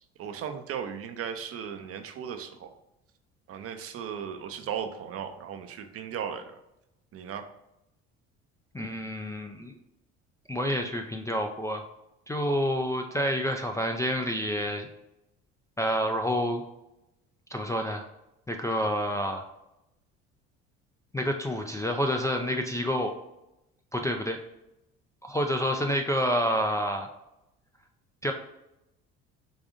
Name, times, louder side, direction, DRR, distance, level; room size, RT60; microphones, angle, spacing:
voice 1, 0.2-2.7 3.5-6.6 7.1-7.5, right 8 dB, 45° right, 8 dB, 0.5 m, -36 dB
voice 2, 8.7-9.8 10.5-11.9 12.3-14.9 15.8-16.6 17.5-18.0 18.5-19.5 21.1-23.1 23.9-24.4 25.2-27.1 28.2-28.3, equal, 10° left, 2 dB, 0.3 m, -28 dB
4.9 x 2.6 x 2.5 m, 0.87 s
supercardioid pair, 75°, 32 cm